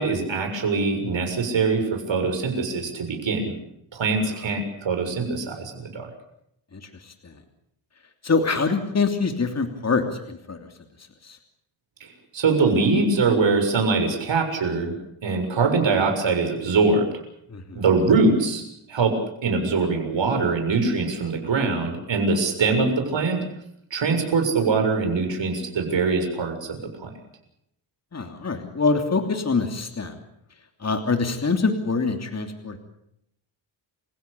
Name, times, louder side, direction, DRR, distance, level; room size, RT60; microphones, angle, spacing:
voice 1, 0.0-3.5 3.9-6.1 12.3-15.0 15.2-17.1 17.8-19.1 19.4-23.4 23.9-27.1, right 4 dB, 65° right, 5 dB, 7.0 m, -23 dB
voice 2, 8.2-10.6 11.2-11.4 17.5-17.8 28.1-30.1 30.8-32.8, left 4 dB, 30° left, 6 dB, 3.0 m, -24 dB
29.5 x 16.5 x 8.5 m, 0.76 s
cardioid pair, 110°, 49 cm